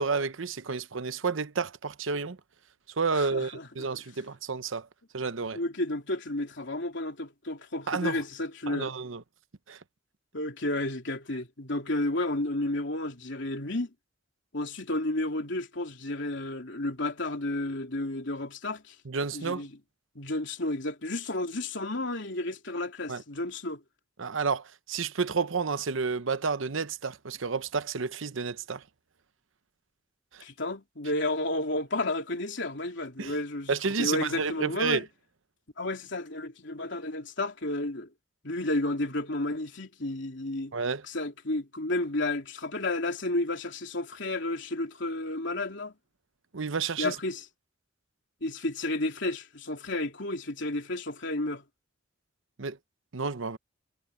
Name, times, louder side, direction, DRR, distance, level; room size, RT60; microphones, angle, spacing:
voice 1, 0.0-2.4 3.0-4.9 5.1-5.6 7.9-8.2 8.7-9.2 9.7-9.8 19.0-19.7 23.1-23.2 24.2-28.8 30.3-30.4 33.2-33.4 33.7-35.0 40.7-41.0 46.5-47.2 52.6-52.8 53.1-53.6, right 4 dB, 80° right, 0.9 m, -30 dB
voice 2, 3.2-3.9 5.5-8.9 10.3-13.9 14.5-18.9 19.3-19.7 20.1-23.8 30.4-33.7 34.0-35.0 35.8-38.1 38.4-40.7 41.1-45.9 47.0-47.4 48.4-51.6, left 2 dB, 65° left, 3.4 m, -32 dB
head